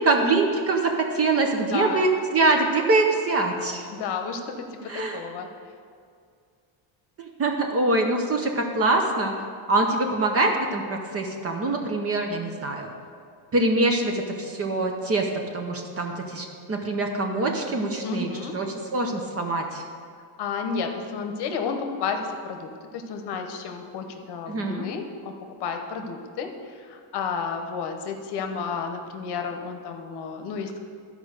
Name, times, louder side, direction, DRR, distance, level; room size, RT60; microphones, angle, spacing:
voice 1, 0.0-3.9 4.9-5.2 7.2-9.3 9.7-12.9 13.5-19.8 24.5-24.9, right 2 dB, 30° right, 3 dB, 0.7 m, -24 dB
voice 2, 1.6-2.1 3.9-5.5 18.0-18.6 20.4-25.3 25.6-30.8, left 5 dB, 55° left, 5 dB, 1.0 m, -32 dB
12.5 x 4.9 x 6.5 m, 2.2 s
cardioid pair, 180°, 49 cm